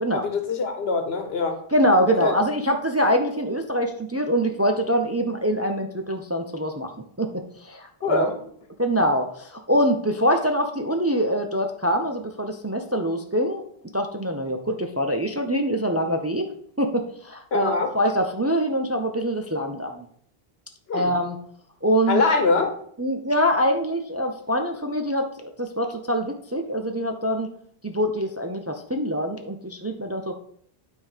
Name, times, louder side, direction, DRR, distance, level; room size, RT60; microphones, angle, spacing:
voice 1, 0.1-1.6 2.2-2.3 8.0-8.4 17.5-17.9 20.9-21.1 22.1-22.7, left 4 dB, 75° left, 6 dB, 1.3 m, -23 dB
voice 2, 1.7-6.9 7.2-8.3 8.8-13.6 13.9-16.5 16.8-20.0 20.9-21.4 21.8-22.2 23.0-27.5 27.8-30.4, equal, 20° right, 4 dB, 0.5 m, -24 dB
9.2 x 3.8 x 4.9 m, 0.64 s
omnidirectional pair, 1.0 m